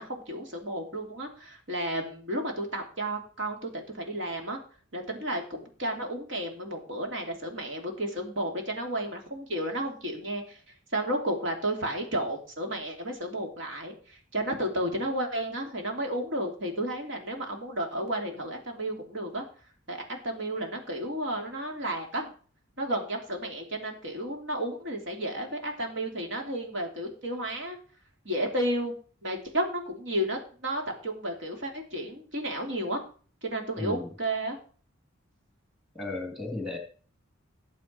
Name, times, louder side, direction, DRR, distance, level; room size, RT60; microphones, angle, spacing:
voice 1, 0.0-4.6 4.9-10.6 10.9-19.4 19.9-22.3 22.8-27.8 28.2-28.9 29.2-33.0 33.4-34.6, right 1 dB, 65° right, 2 dB, 3.0 m, -32 dB
voice 2, 33.8-34.1 35.9-36.8, left 2 dB, ahead, 3 dB, 3.0 m, -34 dB
18.0 x 7.7 x 4.6 m, 0.42 s
head